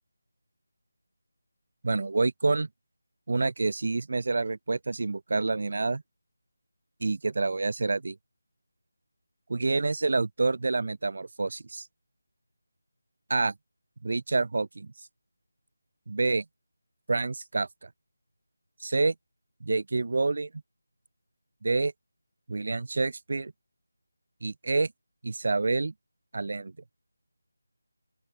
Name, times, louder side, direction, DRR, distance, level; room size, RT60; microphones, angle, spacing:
voice 1, 1.8-2.7 3.3-6.0 7.0-8.2 9.5-11.9 13.3-13.5 14.0-14.9 16.1-16.4 17.1-17.9 18.8-19.1 19.6-20.5 21.6-21.9 22.5-23.5 24.4-24.9 25.2-25.9 26.3-26.7, right 3 dB, 55° right, 2.5 m, -27 dB
open air
figure-of-eight pair, 165°, 0 cm